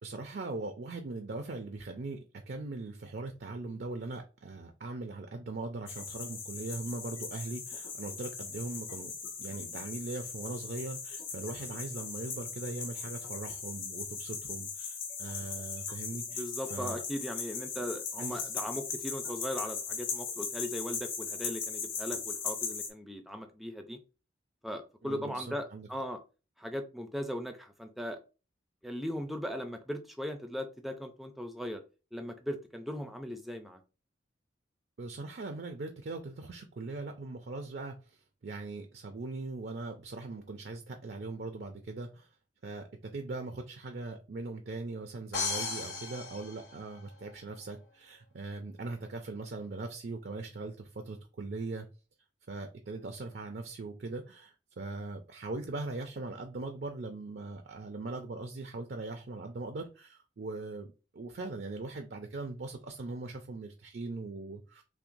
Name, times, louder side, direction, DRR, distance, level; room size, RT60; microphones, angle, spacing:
voice 1, 0.0-9.1 9.4-17.0 18.2-18.5 25.0-25.9 35.0-42.3 42.6-51.9 52.5-64.8, right 3 dB, 55° right, 0.4 m, -40 dB
sound 1, 5.9-22.9, left 5 dB, 90° left, 1.1 m, -39 dB
voice 2, 16.4-24.0 24.6-25.6 25.9-26.2 26.6-28.2 28.8-31.8 32.1-33.8, equal, ahead, 0.4 m, -38 dB
sound 2, 45.3-47.3, left 4 dB, 65° left, 1.6 m, -36 dB
5.7 x 2.1 x 2.6 m
head